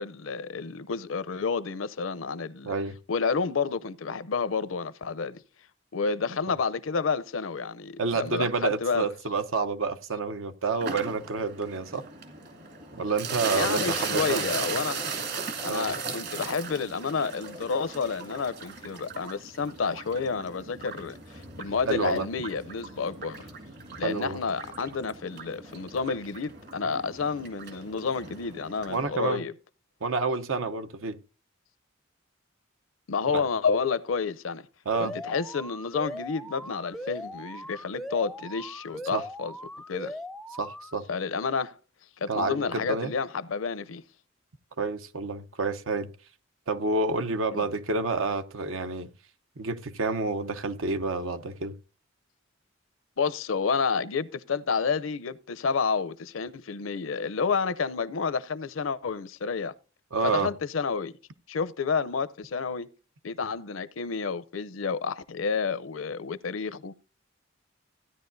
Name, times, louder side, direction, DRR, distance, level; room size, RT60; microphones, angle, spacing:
voice 1, 0.0-2.7 3.1-5.4 5.9-9.1 13.5-15.0 15.6-23.5 24.0-29.5 33.1-34.7 35.0-39.5 39.9-40.1 41.1-41.7 42.2-44.0 47.5-47.6 53.2-59.7 60.2-61.1 61.5-62.9 63.2-66.9, left 5 dB, 75° left, 0.6 m, -30 dB
voice 2, 2.6-3.0 8.0-12.0 12.9-14.4 15.7-15.9 21.9-22.3 24.0-24.4 28.9-29.4 30.0-31.2 33.3-33.4 34.9-35.2 39.1-39.2 40.6-41.0 42.3-43.1 44.8-46.1 46.7-49.1 49.6-51.8 60.1-60.5, right 3 dB, 85° right, 0.8 m, -29 dB
sound 1, 10.8-29.0, right 4 dB, 55° right, 2.1 m, -37 dB
Alarm, 34.9-40.9, equal, ahead, 0.4 m, -39 dB
15.5 x 10.0 x 2.6 m
head